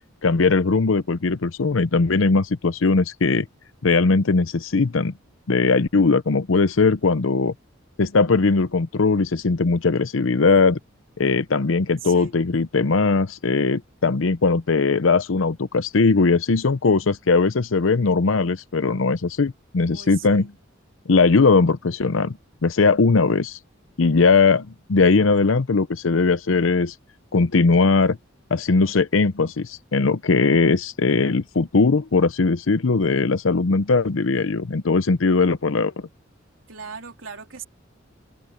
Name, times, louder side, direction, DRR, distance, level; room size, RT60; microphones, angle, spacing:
voice 1, 0.2-3.5 3.8-5.1 5.5-7.5 8.0-10.8 11.2-20.5 21.1-23.6 24.0-26.9 27.3-28.2 28.5-35.9, left 4 dB, 85° left, 0.7 m, -19 dB
voice 2, 12.0-12.3 19.9-20.5 36.7-37.6, right 6 dB, 90° right, 3.2 m, -39 dB
open air
head